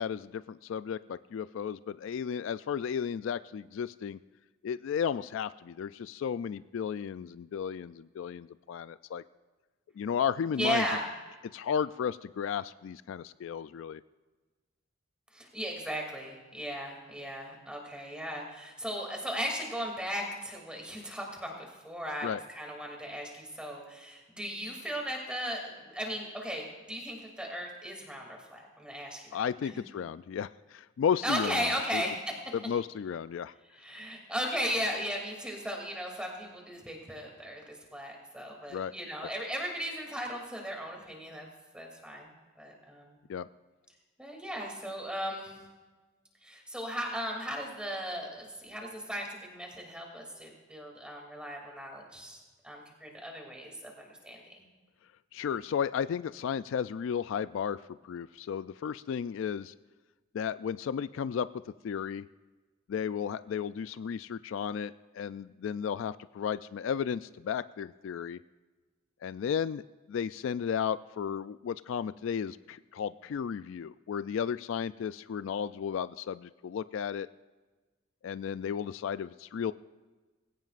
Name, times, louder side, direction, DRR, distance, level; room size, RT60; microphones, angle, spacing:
voice 1, 0.0-4.2 4.6-9.2 10.0-10.8 11.5-14.0 22.2-22.4 29.3-32.0 32.5-33.5 38.7-38.9 39.2-39.3 43.3-43.5 55.3-59.7 60.3-61.5 61.8-62.2 62.9-68.4 69.2-69.8 70.1-77.3 78.2-79.7, left 7 dB, 65° left, 14 dB, 0.3 m, -34 dB
voice 2, 10.5-11.1 15.3-29.7 31.2-32.3 33.7-41.5 41.7-42.3 42.6-43.2 44.2-45.6 46.4-54.4, equal, 5° right, 0 dB, 2.6 m, -36 dB
20.5 x 17.0 x 2.5 m, 1.3 s
head